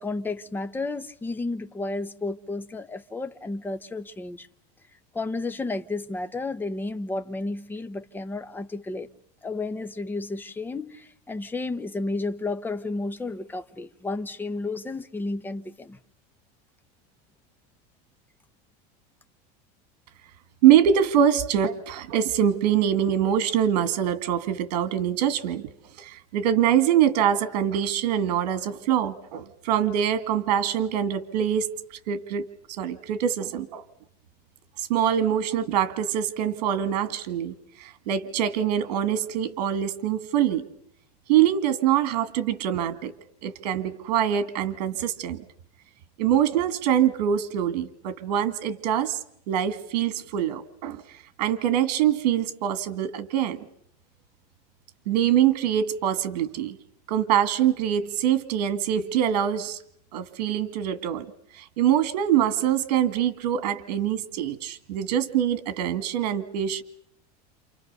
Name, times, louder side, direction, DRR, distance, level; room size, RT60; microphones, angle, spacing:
voice 1, 0.0-4.5 5.1-9.1 9.4-16.0, left 3 dB, 10° left, 1.0 m, -32 dB
voice 2, 20.6-25.7 26.0-31.7 32.1-33.8 34.8-37.5 37.8-40.7 41.3-43.1 43.4-45.4 46.2-49.2 49.5-51.0 51.4-53.6 55.1-56.8 57.1-59.8 60.1-61.3 61.5-66.8, right 10 dB, 85° right, 2.0 m, -24 dB
29.0 x 28.5 x 6.8 m
supercardioid pair, 155°, 20 cm